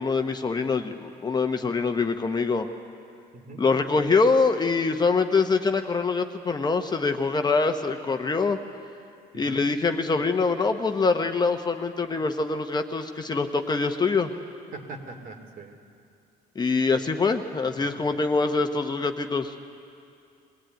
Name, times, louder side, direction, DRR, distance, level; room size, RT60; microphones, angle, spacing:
voice 1, 0.0-2.7 3.6-8.6 9.3-14.3 16.5-19.5, left 4 dB, 25° left, 6 dB, 1.1 m, -24 dB
voice 2, 3.3-3.6 9.3-9.6 14.7-15.8 17.8-17.9, right 3 dB, 55° right, 4 dB, 2.7 m, -41 dB
22.0 x 17.5 x 9.2 m, 2.4 s
cardioid pair, 110°, 17 cm